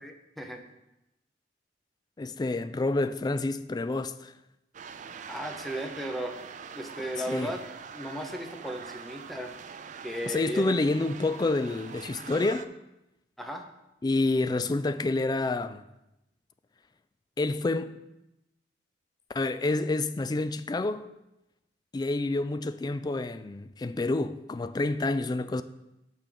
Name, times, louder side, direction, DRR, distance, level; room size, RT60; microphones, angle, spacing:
voice 1, 0.0-0.6 5.3-6.4 6.7-7.6 7.9-9.5 10.0-10.8 13.4-13.7, equal, ahead, 0.8 m, -35 dB
voice 2, 2.2-4.3 7.3-7.5 10.3-12.7 14.0-15.9 17.4-18.0 19.3-21.1 21.9-25.6, left 2 dB, 25° left, 0.3 m, -28 dB
sound 1, 4.7-12.7, right 6 dB, 45° right, 0.4 m, -44 dB
6.1 x 5.5 x 6.8 m
head